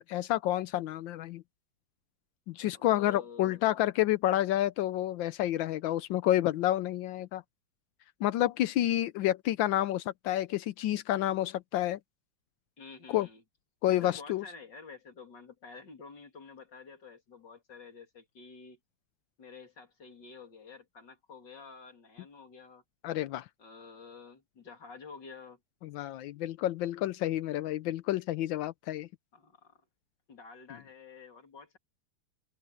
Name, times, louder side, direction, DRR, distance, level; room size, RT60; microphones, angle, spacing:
voice 1, 0.0-1.4 2.5-7.4 8.2-12.0 13.1-13.3 13.8-14.4 23.0-23.4 25.9-29.1, left 13 dB, 80° left, 1.3 m, -29 dB
voice 2, 2.7-3.8 12.8-13.4 13.9-18.8 19.4-22.8 23.6-25.6 29.3-29.8 30.3-31.8, left 5 dB, 65° left, 3.6 m, -50 dB
omnidirectional pair, 2.1 m